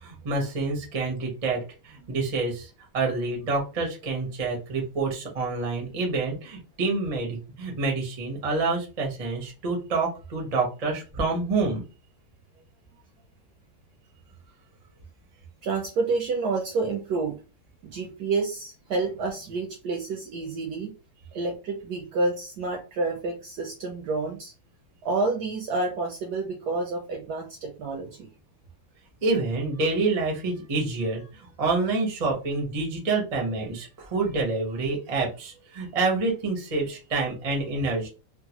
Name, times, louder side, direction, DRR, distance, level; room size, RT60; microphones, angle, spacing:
voice 1, 0.0-2.7 2.9-11.8 29.2-38.1, right 3 dB, 55° right, -1 dB, 0.4 m, -27 dB
voice 2, 15.6-17.4 17.8-20.9 21.3-24.5 25.0-28.3, right 3 dB, 75° right, 2 dB, 0.9 m, -29 dB
3.6 x 2.1 x 2.9 m, 0.32 s
omnidirectional pair, 2.3 m